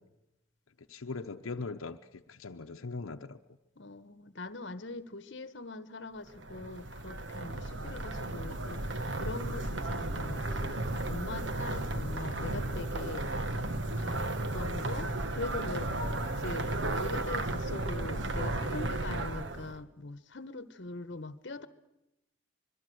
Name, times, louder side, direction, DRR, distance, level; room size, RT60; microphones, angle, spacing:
voice 1, 0.9-2.0 2.3-3.4, left 3 dB, 85° left, 6 dB, 0.8 m, -39 dB
voice 2, 3.8-8.9 9.2-13.2 14.0-14.2 14.5-15.9 16.4-21.7, left 2 dB, 60° left, 12 dB, 1.2 m, -42 dB
sound 1, 6.3-19.8, right 2 dB, 60° right, 1.4 m, -34 dB
25.0 x 22.5 x 7.8 m, 0.93 s
head